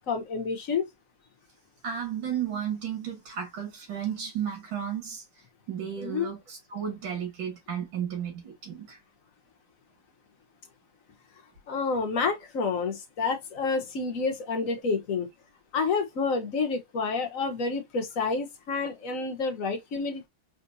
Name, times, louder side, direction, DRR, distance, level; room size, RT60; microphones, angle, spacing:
voice 1, 0.1-0.9 6.0-6.3 11.7-15.3 15.7-20.3, left 4 dB, 50° left, 1.2 m, -29 dB
voice 2, 1.8-5.2 5.7-9.0, right 8 dB, 65° right, 2.4 m, -33 dB
4.2 x 3.9 x 2.6 m
omnidirectional pair, 2.3 m